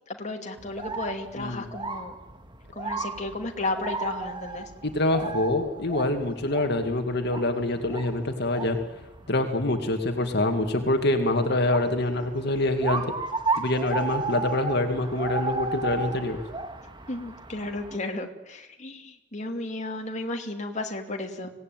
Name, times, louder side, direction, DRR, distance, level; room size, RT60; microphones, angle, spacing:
voice 1, 0.1-2.1 2.8-4.7 17.1-21.5, left 2 dB, 40° left, 3 dB, 2.6 m, -33 dB
sound 1, 0.6-18.0, right 3 dB, 25° right, 2.0 m, -35 dB
voice 2, 1.4-1.7 4.8-8.8 9.3-13.1 13.6-16.4, left 1 dB, 60° left, 5 dB, 2.4 m, -25 dB
25.5 x 18.0 x 9.3 m, 0.98 s
head